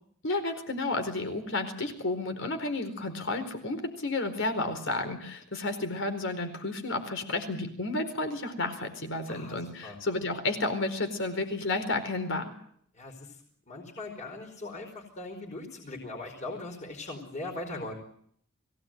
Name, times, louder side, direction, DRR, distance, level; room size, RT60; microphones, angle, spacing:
voice 1, 0.2-12.5, left 2 dB, 60° left, 7 dB, 4.5 m, -31 dB
voice 2, 9.3-10.0 12.9-13.3 13.7-17.9, left 2 dB, 35° left, 3 dB, 4.8 m, -40 dB
22.5 x 17.0 x 9.2 m, 0.64 s
head